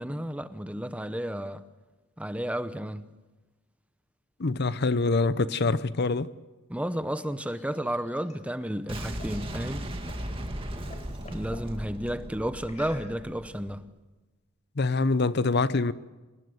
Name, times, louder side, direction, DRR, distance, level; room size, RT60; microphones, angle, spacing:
voice 1, 0.0-1.6 2.2-3.0 6.7-9.9 11.3-13.8, equal, 5° right, 0.8 m, -32 dB
voice 2, 4.4-6.3 14.8-15.9, left 3 dB, 55° left, 0.7 m, -25 dB
sound 1, 7.0-10.3 10.7-11.7 12.6-13.5, left 2 dB, 35° left, 3.7 m, -50 dB
Boom, 8.9-13.8, right 1 dB, 25° right, 2.1 m, -37 dB
26.0 x 20.0 x 8.0 m
head